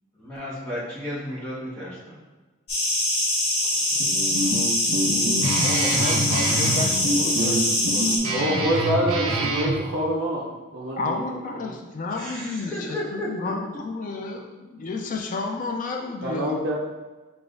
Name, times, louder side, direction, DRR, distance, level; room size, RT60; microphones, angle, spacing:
voice 1, 0.2-2.2 12.2-13.5, equal, 5° left, -11 dB, 1.0 m, -33 dB
sound 1, 2.7-8.2, left 1 dB, 75° left, 1.1 m, -23 dB
Guitar, 4.0-9.8, right 1 dB, 75° right, 1.1 m, -26 dB
voice 2, 5.6-8.6 10.9-16.7, left 3 dB, 35° left, 2 dB, 0.3 m, -32 dB
voice 3, 8.3-10.5 10.7-11.7 16.2-16.7, right 1 dB, 60° right, -7 dB, 0.6 m, -26 dB
6.8 x 2.3 x 2.5 m, 1.2 s
head